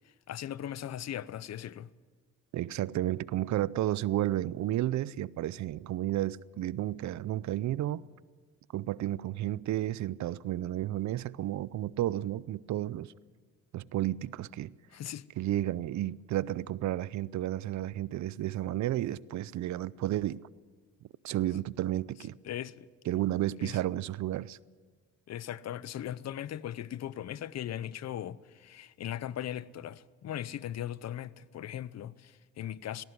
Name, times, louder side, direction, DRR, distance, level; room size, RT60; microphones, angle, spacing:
voice 1, 0.0-1.9 14.9-15.3 22.4-22.9 23.6-23.8 25.3-33.0, left 11 dB, 60° left, 0.7 m, -39 dB
voice 2, 2.5-8.1 8.7-13.1 13.7-14.7 15.4-20.4 21.2-22.4 23.1-24.6, right 14 dB, 70° right, 0.6 m, -32 dB
20.0 x 17.0 x 8.0 m
cardioid pair, 90°, 30 cm